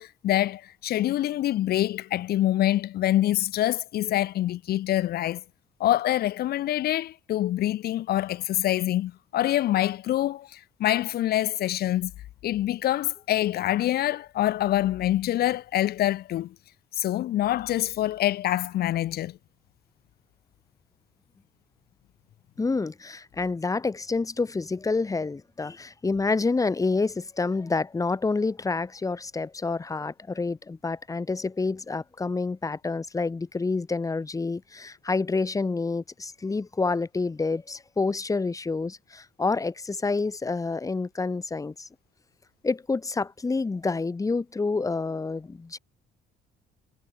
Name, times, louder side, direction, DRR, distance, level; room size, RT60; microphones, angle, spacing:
voice 1, 0.0-5.4 5.8-12.1 12.4-16.5 16.9-19.4, left 13 dB, 65° left, 1.9 m, -25 dB
voice 2, 22.6-41.9 42.6-45.8, left 3 dB, 20° left, 2.8 m, -28 dB
cardioid pair, 110°, 17 cm